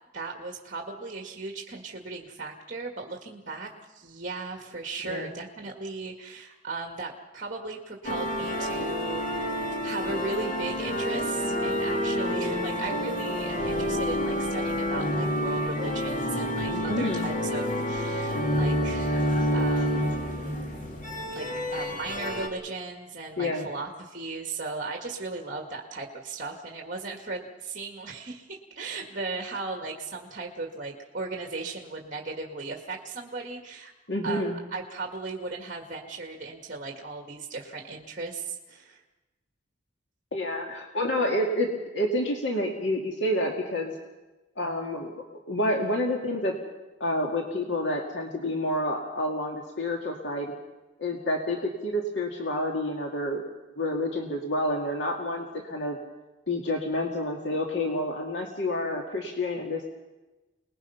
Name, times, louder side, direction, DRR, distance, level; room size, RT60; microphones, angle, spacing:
voice 1, 0.1-9.6 9.8-19.3 19.5-20.1 21.4-33.9 34.2-39.0, right 3 dB, 45° right, 2 dB, 1.9 m, -37 dB
sound 1, 8.0-22.5, equal, 45° left, 2.6 m, -28 dB
voice 2, 16.7-17.3 23.4-23.6 34.1-34.6 40.3-43.9 44.6-46.5 47.0-50.5 51.0-53.4 53.8-56.0 56.5-59.9, left 1 dB, 75° left, 0 dB, 2.3 m, -29 dB
29.0 x 20.0 x 5.7 m, 1.1 s
head